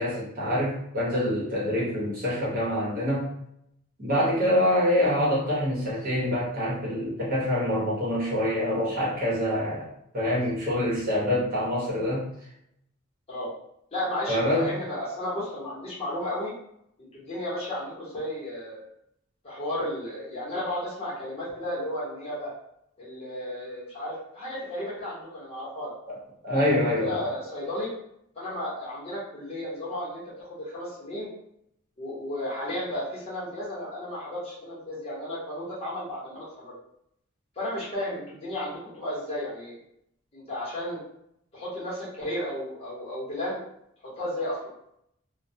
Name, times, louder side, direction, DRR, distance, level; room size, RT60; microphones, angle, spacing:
voice 1, 0.0-3.3 4.0-9.9 10.1-12.2 14.3-14.7 26.1-26.2 26.4-27.2, left 1 dB, 40° right, -7 dB, 1.0 m, -25 dB
voice 2, 13.9-16.5 17.0-18.9 19.4-22.5 23.0-25.9 26.8-27.9 28.3-31.3 32.0-36.7 37.6-39.8 40.3-41.0 41.5-43.6 44.0-44.7, left 1 dB, 30° left, -8 dB, 0.9 m, -33 dB
2.2 x 2.2 x 2.6 m, 0.75 s
head